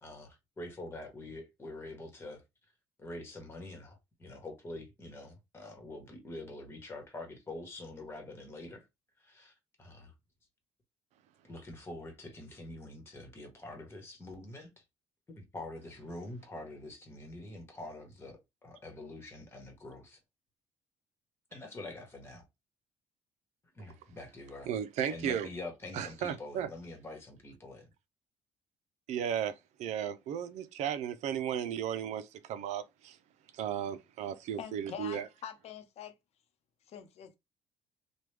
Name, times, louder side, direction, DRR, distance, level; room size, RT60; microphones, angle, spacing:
voice 1, 0.0-2.4 3.0-8.9 9.2-10.1 11.4-14.7 15.4-20.2 21.5-22.4 23.7-24.7 25.1-27.9, left 2 dB, 20° left, 1.2 m, -45 dB
voice 2, 24.7-25.5 25.9-26.7 29.1-33.2 33.5-35.3, right 9 dB, 75° right, 0.5 m, -35 dB
voice 3, 34.6-36.1 36.9-37.3, left 9 dB, 65° left, 0.7 m, -44 dB
3.0 x 2.3 x 3.3 m
cardioid pair, 115°, 12 cm